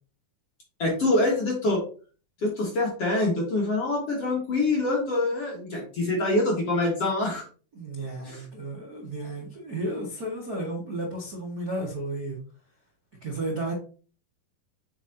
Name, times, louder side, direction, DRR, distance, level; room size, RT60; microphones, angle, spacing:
voice 1, 0.8-1.8 2.4-7.4 8.2-8.5, left 2 dB, 50° left, -3 dB, 2.1 m, -25 dB
voice 2, 7.7-12.4 13.2-13.7, right 1 dB, 55° right, -3 dB, 1.0 m, -33 dB
8.3 x 6.0 x 2.9 m, 0.38 s
omnidirectional pair, 5.0 m